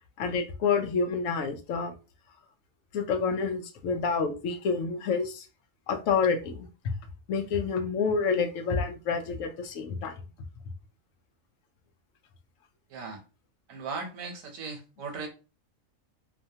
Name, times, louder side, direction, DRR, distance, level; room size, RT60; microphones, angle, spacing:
voice 1, 0.2-1.9 2.9-5.5 5.9-6.7 7.3-10.2, left 5 dB, 75° left, 0.9 m, -28 dB
voice 2, 13.7-15.3, right 4 dB, 85° right, 1.2 m, -37 dB
2.8 x 2.1 x 2.7 m
omnidirectional pair, 1.4 m